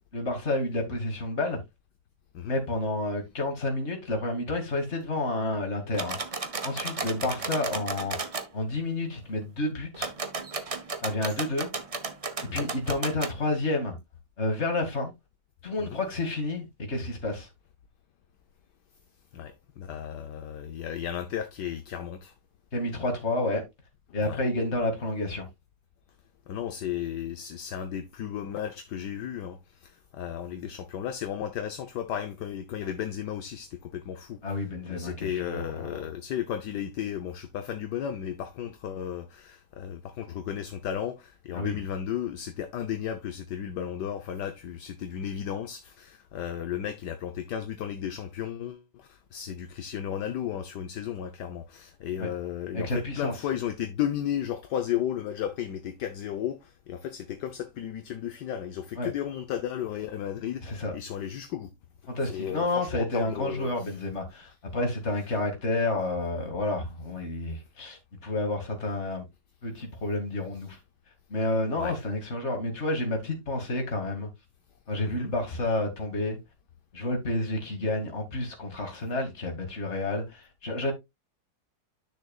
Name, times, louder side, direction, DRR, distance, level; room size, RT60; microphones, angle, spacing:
voice 1, 0.1-1.6 2.5-6.3 6.6-10.1 11.0-11.7 12.5-14.0 14.4-15.1 15.6-17.5 22.7-23.6 24.1-25.5 34.4-35.9 41.5-41.8 52.2-52.3 52.7-53.3 59.0-59.1 60.6-60.9 62.1-69.2 69.6-70.8 71.3-74.3 74.9-76.4 76.9-80.9, left 2 dB, 35° left, 2.5 m, -30 dB
sound 1, 5.9-8.5 9.9-13.3, right 4 dB, 40° right, 0.5 m, -34 dB
voice 2, 19.3-22.3 24.2-24.4 26.5-34.5 34.9-61.7 62.2-63.9 71.8-72.0 75.0-75.3, left 9 dB, 70° left, 1.3 m, -34 dB
10.5 x 6.4 x 2.4 m
omnidirectional pair, 2.0 m